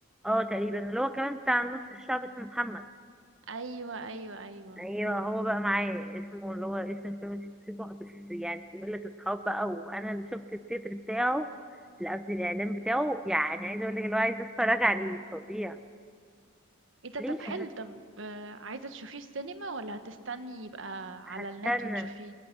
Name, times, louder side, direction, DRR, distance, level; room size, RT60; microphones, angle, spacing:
voice 1, 0.2-2.8 4.8-11.5 12.0-15.8 17.2-17.6 21.3-22.1, equal, 5° right, 9 dB, 0.5 m, -31 dB
voice 2, 3.5-4.9 17.0-22.3, right 3 dB, 65° right, 9 dB, 1.3 m, -40 dB
29.0 x 21.0 x 6.1 m, 2.1 s
head